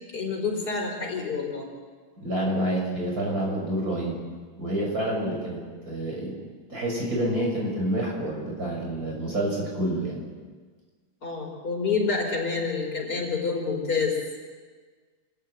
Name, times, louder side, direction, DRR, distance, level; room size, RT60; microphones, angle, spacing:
voice 1, 0.1-1.7 11.2-14.2, left 4 dB, 50° left, 0 dB, 5.4 m, -28 dB
voice 2, 2.2-4.2 4.6-6.3 6.7-10.2, right 1 dB, 45° right, -1 dB, 6.9 m, -28 dB
29.0 x 14.5 x 9.3 m, 1.5 s
omnidirectional pair, 2.2 m